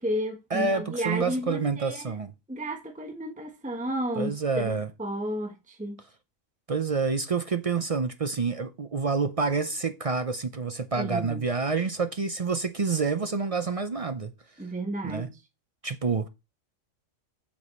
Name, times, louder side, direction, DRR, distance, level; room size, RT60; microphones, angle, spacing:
voice 1, 0.0-2.2 2.5-6.0 11.0-11.4 14.6-15.3, equal, 5° right, 1.2 m, -32 dB
voice 2, 0.5-2.3 4.2-4.9 6.7-14.3 15.0-15.3 15.8-16.3, right 4 dB, 50° right, 0.4 m, -28 dB
8.5 x 6.9 x 4.3 m
omnidirectional pair, 1.4 m